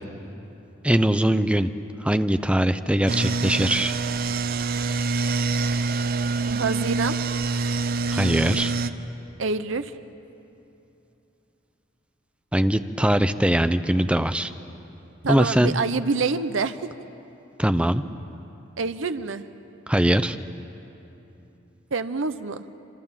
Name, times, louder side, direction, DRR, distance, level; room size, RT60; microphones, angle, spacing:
voice 1, 0.8-1.7 2.0-4.0 8.1-8.7 12.5-14.5 15.3-15.7 17.6-18.0 19.9-20.4, right 1 dB, 5° right, 11 dB, 0.6 m, -21 dB
sound 1, 3.1-8.9, right 4 dB, 50° right, 0.8 m, -25 dB
voice 2, 6.5-7.2 9.4-9.9 15.2-16.9 18.8-19.5 21.9-22.6, right 4 dB, 80° right, 11 dB, 0.8 m, -26 dB
26.5 x 26.5 x 7.4 m, 2.9 s
head